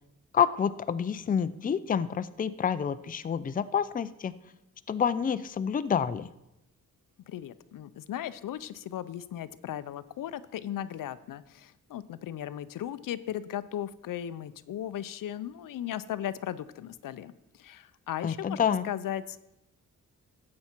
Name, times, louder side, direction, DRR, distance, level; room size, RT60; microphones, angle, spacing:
voice 1, 0.3-4.3 4.9-6.3 18.2-18.9, left 7 dB, 25° left, 13 dB, 0.4 m, -28 dB
voice 2, 7.3-19.5, left 11 dB, 90° left, 15 dB, 0.6 m, -37 dB
13.5 x 8.6 x 4.4 m, 0.88 s
wide cardioid pair, 125°, 32 cm